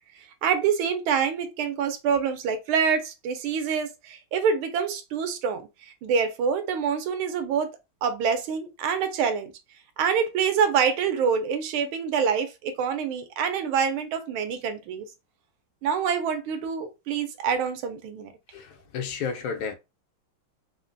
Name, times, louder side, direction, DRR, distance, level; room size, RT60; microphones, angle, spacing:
voice 1, 0.4-7.7 8.0-9.5 10.0-15.0 15.8-18.3, right 6 dB, 85° right, 1.5 m, -26 dB
voice 2, 18.5-19.7, left 6 dB, 80° left, 1.5 m, -32 dB
3.8 x 2.1 x 2.6 m
omnidirectional pair, 2.2 m